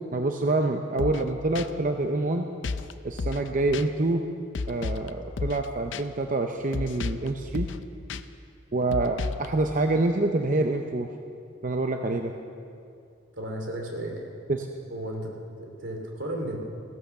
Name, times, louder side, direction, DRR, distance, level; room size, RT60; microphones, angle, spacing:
voice 1, 0.1-2.5 3.0-4.2 4.7-7.7 8.7-11.1 11.6-12.3 14.5-14.7, right 2 dB, 40° right, 4 dB, 0.6 m, -26 dB
sound 1, 1.0-1.3 1.6-1.7 2.6-2.9 3.2-3.5 3.7-3.9 4.5-5.1 5.4-5.7 5.9-6.0 6.7-7.3 7.5-7.8 8.1-8.2 8.9-9.5, left 4 dB, 70° left, 0.5 m, -32 dB
voice 2, 13.3-14.3 14.9-16.6, right 1 dB, 80° right, 1 dB, 2.6 m, -34 dB
16.0 x 11.5 x 6.9 m, 2.4 s
head